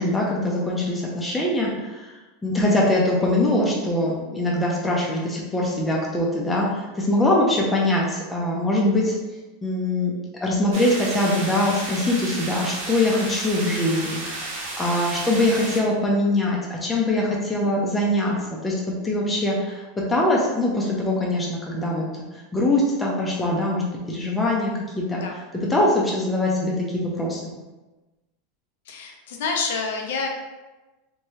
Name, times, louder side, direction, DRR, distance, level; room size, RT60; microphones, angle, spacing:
voice 1, 0.0-2.1 2.4-9.2 9.6-10.1 10.4-18.4 18.6-18.7 19.0-19.8 20.1-22.0 22.5-25.2 25.7-27.5, left 1 dB, 10° left, -3 dB, 0.5 m, -23 dB
sound 1, 10.7-15.8, right 2 dB, 80° right, 1.1 m, -33 dB
voice 2, 28.9-30.3, left 4 dB, 80° left, 2 dB, 0.5 m, -28 dB
3.0 x 2.2 x 2.7 m, 1.1 s
supercardioid pair, 145°, 0 cm